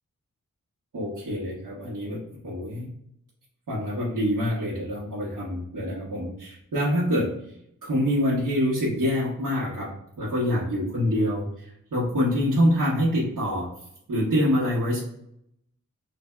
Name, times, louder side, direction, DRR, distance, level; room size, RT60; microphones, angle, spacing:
voice 1, 0.9-2.9 3.7-7.3 7.8-9.9 10.2-13.7 14.1-15.0, equal, 75° right, -8 dB, 1.2 m, -25 dB
3.4 x 2.5 x 3.3 m, 0.74 s
wide cardioid pair, 135°, 32 cm